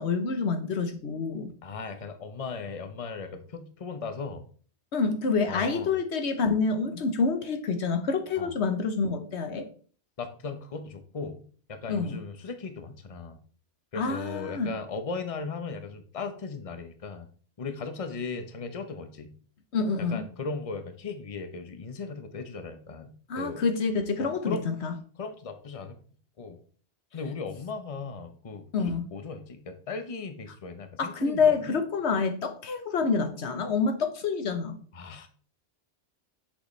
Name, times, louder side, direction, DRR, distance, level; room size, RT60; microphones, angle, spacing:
voice 1, 0.0-1.5 4.9-9.7 11.9-12.2 14.0-14.7 19.7-20.2 23.3-24.9 28.7-29.1 31.0-34.8, left 4 dB, 75° left, 1.2 m, -27 dB
voice 2, 1.6-4.4 5.5-5.9 8.4-8.5 10.2-11.4 11.7-13.4 13.9-17.3 17.6-19.3 20.0-23.6 24.2-24.7 25.2-26.0 26.4-26.6 27.1-31.7 34.9-35.3, left 4 dB, 35° left, 0.9 m, -37 dB
7.8 x 6.9 x 3.2 m
omnidirectional pair, 1.2 m